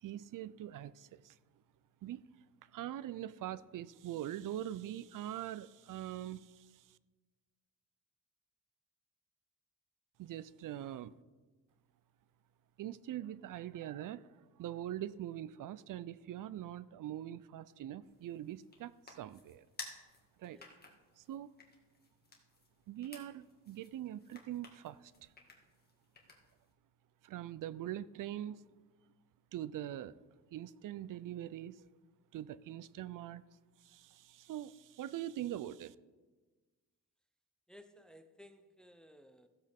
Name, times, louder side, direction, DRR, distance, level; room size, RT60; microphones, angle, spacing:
voice 1, 0.0-1.4 2.0-2.3 2.6-7.0 10.2-11.1 12.8-19.7 20.4-20.6 21.2-21.5 22.9-25.3 27.2-28.7 29.5-30.2 30.5-31.9 32.3-33.4 33.8-35.9, right 12 dB, 75° right, 18 dB, 0.5 m, -43 dB
sound 1, 18.0-26.7, left 3 dB, 30° left, 1.9 m, -55 dB
voice 2, 37.7-39.5, left 1 dB, ahead, 9 dB, 0.6 m, -58 dB
15.0 x 7.9 x 3.5 m, 1.3 s
cardioid pair, 110°, 32 cm